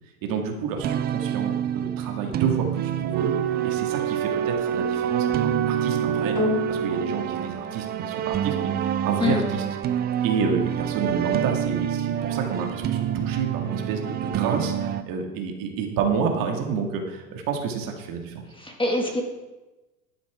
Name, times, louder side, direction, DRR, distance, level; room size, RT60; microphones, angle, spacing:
voice 1, 0.2-3.3 3.6-6.4 6.7-9.6 10.2-18.4, right 5 dB, 45° right, 2 dB, 2.0 m, -29 dB
sound 1, 0.8-15.0, right 10 dB, 20° right, 0.4 m, -28 dB
Wind instrument woodwind instrument, 3.1-7.5, right 8 dB, 60° right, 1.1 m, -28 dB
sound 2, 6.4-14.9 15.6-15.7, left 3 dB, 35° left, 4.1 m, -37 dB
voice 2, 18.5-19.2, left 2 dB, 10° left, 1 dB, 1.9 m, -25 dB
11.5 x 9.7 x 3.6 m, 1.1 s
hypercardioid pair, 100°, 46 cm